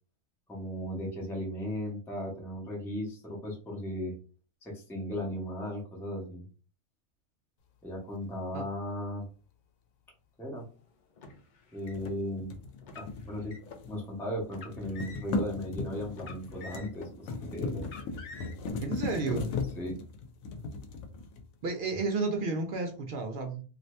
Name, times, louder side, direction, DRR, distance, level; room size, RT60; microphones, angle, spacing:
voice 1, 0.5-4.1 4.6-6.4 7.8-9.3 10.4-10.7 11.7-12.5 12.9-13.5 13.9-17.9 19.8-19.9, equal, ahead, -3 dB, 0.7 m, -36 dB
Car, 11.2-12.1 12.8-13.8 14.5-15.4 16.1-17.2 17.8-18.7, left 3 dB, 50° left, 0.6 m, -47 dB
sound 1, 11.9-14.1 14.4-21.7, left 3 dB, 90° left, 1.0 m, -37 dB
voice 2, 18.8-19.5 21.6-23.6, right 3 dB, 60° right, 4 dB, 0.6 m, -31 dB
2.7 x 2.6 x 3.2 m, 0.37 s
omnidirectional pair, 1.4 m